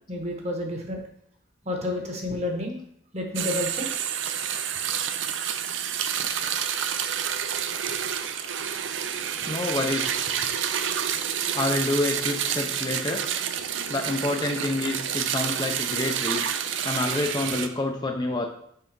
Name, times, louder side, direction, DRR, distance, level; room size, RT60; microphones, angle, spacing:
voice 1, 0.1-1.0 1.6-2.8 3.1-3.9 11.1-11.2, left 1 dB, 35° right, 2 dB, 1.1 m, -30 dB
sound 1, 3.4-17.7, right 8 dB, 75° right, 0.5 m, -29 dB
voice 2, 9.4-10.3 11.5-13.2 13.9-16.4 16.8-18.5, left 2 dB, 20° left, 3 dB, 0.5 m, -28 dB
5.7 x 4.0 x 5.4 m, 0.69 s
head